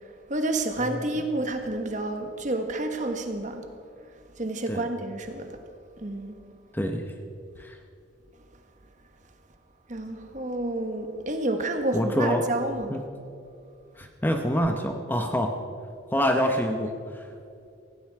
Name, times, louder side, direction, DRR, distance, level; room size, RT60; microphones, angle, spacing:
voice 1, 0.3-3.7 4.4-5.5 6.0-6.4 9.9-12.9, right 2 dB, 35° right, 6 dB, 1.4 m, -29 dB
voice 2, 6.7-7.1 7.6-7.8 11.9-12.5 12.9-13.0 13.9-15.6 16.1-17.3, equal, 10° left, 4 dB, 0.9 m, -26 dB
17.0 x 16.5 x 4.7 m, 2.5 s
head